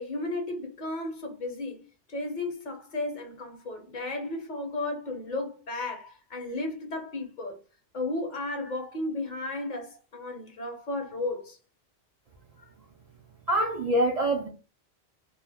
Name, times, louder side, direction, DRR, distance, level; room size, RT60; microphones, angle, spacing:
voice 1, 0.0-7.6 7.9-11.6, left 2 dB, 55° left, 0.7 m, -34 dB
voice 2, 13.5-14.5, right 1 dB, 55° right, 0.4 m, -25 dB
2.2 x 2.1 x 3.2 m
omnidirectional pair, 1.1 m